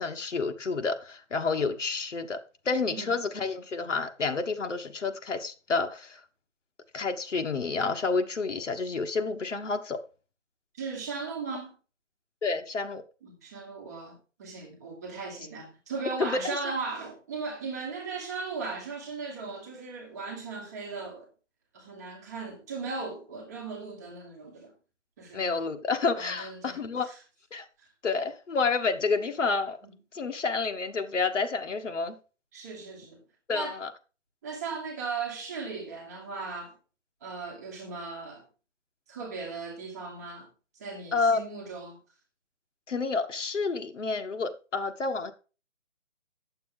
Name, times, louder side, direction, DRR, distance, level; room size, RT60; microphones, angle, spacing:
voice 1, 0.0-2.4 2.6-6.2 6.9-10.0 12.4-13.0 16.2-16.5 25.3-27.1 27.5-27.6 28.0-29.8 30.1-32.2 33.5-33.9 41.1-41.4 42.9-45.3, left 4 dB, 65° left, 1.4 m, -29 dB
voice 2, 10.8-11.7 13.2-21.3 21.7-24.7 25.2-25.4 26.1-27.1 27.8-27.9 32.5-33.2 33.5-33.8 34.4-36.7 37.2-38.4 39.1-40.5 40.8-42.0, right 4 dB, 15° right, 1.3 m, -37 dB
9.3 x 7.0 x 3.7 m
hypercardioid pair, 170°, 39 cm